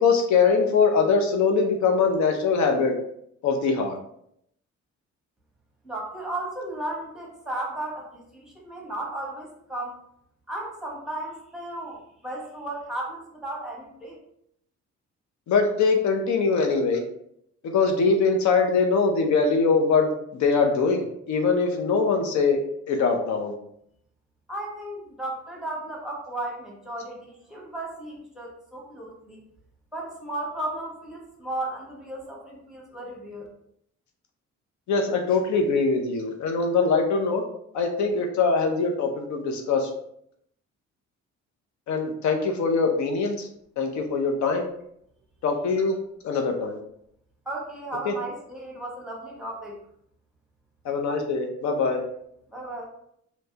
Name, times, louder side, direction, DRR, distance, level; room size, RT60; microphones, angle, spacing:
voice 1, 0.0-2.9 3.4-4.0 15.5-17.0 17.6-20.1 20.4-23.5 34.9-37.4 37.7-39.9 41.9-43.5 43.8-44.6 45.4-46.0 46.2-46.8 48.1-48.2 50.8-52.0, left 4 dB, 70° left, 4 dB, 0.6 m, -22 dB
voice 2, 5.8-10.0 10.5-14.2 24.5-29.4 29.9-33.5 47.4-49.8 52.5-52.8, right 1 dB, ahead, -2 dB, 1.1 m, -35 dB
3.2 x 2.9 x 2.8 m, 0.72 s
cardioid pair, 90°, 30 cm